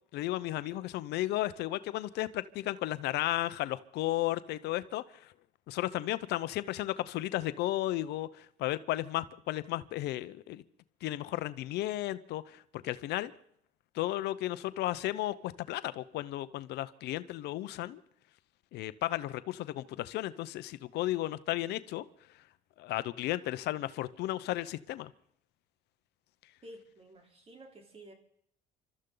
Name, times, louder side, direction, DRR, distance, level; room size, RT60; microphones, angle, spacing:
voice 1, 0.1-5.3 5.7-10.6 11.0-13.3 13.9-18.0 18.7-22.0 22.8-25.1, left 15 dB, 80° left, 0.8 m, -34 dB
voice 2, 26.6-28.1, right 1 dB, 35° right, 3.6 m, -52 dB
27.0 x 13.5 x 3.9 m
cardioid pair, 110°, 17 cm